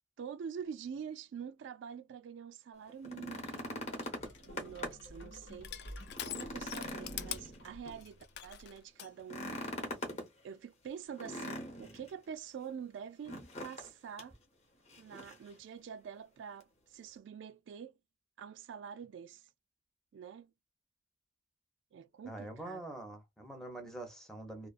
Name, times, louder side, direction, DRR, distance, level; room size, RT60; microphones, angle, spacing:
voice 1, 0.2-3.8 4.5-5.7 6.2-9.5 10.1-14.4 15.0-17.9 18.4-19.5 20.1-20.5 21.9-22.8, right 7 dB, 65° right, 0.3 m, -46 dB
sound 1, 2.9-5.2 5.6-5.7 6.1-8.0 9.2-10.3 11.2-12.1 13.3-13.9 14.2-14.3 14.9-15.5 16.6-16.7, left 1 dB, 35° left, 0.9 m, -42 dB
sound 2, 3.6-8.4, equal, 80° left, 0.8 m, -52 dB
Crushing, 4.3-9.1, left 11 dB, 60° left, 0.3 m, -45 dB
voice 2, 22.2-24.7, right 2 dB, ahead, 0.6 m, -45 dB
2.3 x 2.3 x 2.4 m
head